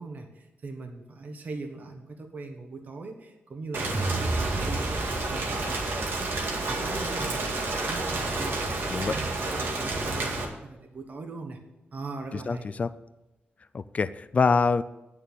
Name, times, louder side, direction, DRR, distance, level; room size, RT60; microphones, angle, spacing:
voice 1, 0.0-11.6 11.9-12.7, right 3 dB, 45° right, 5 dB, 1.2 m, -40 dB
Rain, 3.7-10.4, right 2 dB, 75° right, 2.1 m, -30 dB
sound 1, 3.9-10.1, right 2 dB, 20° right, 0.5 m, -36 dB
voice 2, 12.3-12.9 13.7-14.8, left 4 dB, 35° left, 14 dB, 0.4 m, -25 dB
9.3 x 6.6 x 8.8 m, 1.0 s
wide cardioid pair, 140°, 4 cm